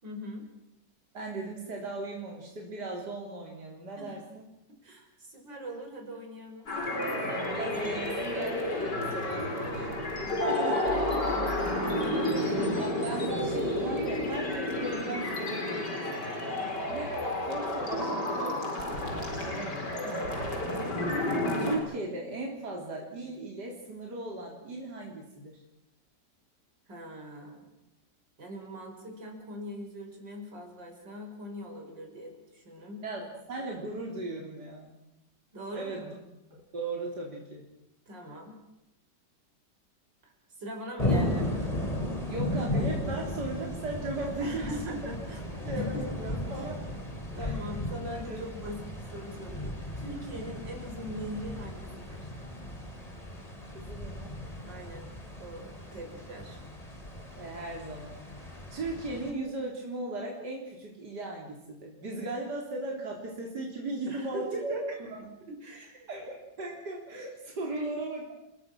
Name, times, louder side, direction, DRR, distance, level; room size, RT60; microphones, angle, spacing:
voice 1, 0.0-0.5 4.0-4.2 4.8-6.7 10.2-11.5 11.8-12.8 16.5-17.0 20.1-20.4 26.9-27.7 28.4-33.0 35.5-36.0 38.1-38.6 40.2-40.3 40.6-41.5 44.4-46.7 47.3-52.3 54.7-56.6 64.1-65.0 65.5-66.3 67.7-67.9, equal, 90° right, 2 dB, 6.2 m, -41 dB
voice 2, 1.1-4.5 7.2-10.9 12.8-16.1 16.9-19.2 19.4-19.9 21.6-25.6 33.0-34.9 35.7-36.2 36.5-37.7 42.3-44.9 45.7-46.8 47.4-47.6 48.1-48.4 53.7-54.4 57.3-64.8 65.1-65.3 66.1-68.3, right 2 dB, 70° right, -1 dB, 4.3 m, -37 dB
sound 1, 6.7-21.8, left 1 dB, 70° left, 5.3 m, -31 dB
sound 2, 41.0-59.3, left 1 dB, 20° left, 3.7 m, -35 dB
30.0 x 20.5 x 6.2 m, 0.86 s
omnidirectional pair, 1.9 m